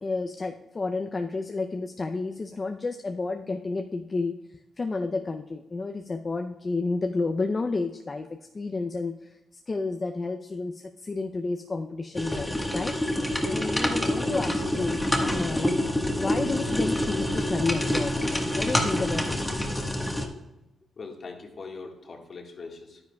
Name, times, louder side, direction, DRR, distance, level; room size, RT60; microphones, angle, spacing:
voice 1, 0.0-4.4 4.8-8.3 8.5-9.4 9.7-12.9 13.4-15.0 15.3-15.8 16.1-18.1 18.5-19.6, left 3 dB, 35° left, 4 dB, 0.6 m, -31 dB
sound 1, 12.2-20.3, left 1 dB, 10° left, 1.4 m, -27 dB
voice 2, 21.0-23.0, left 4 dB, 55° left, 2 dB, 1.7 m, -41 dB
10.5 x 9.8 x 2.3 m, 0.90 s
cardioid pair, 65°, 0 cm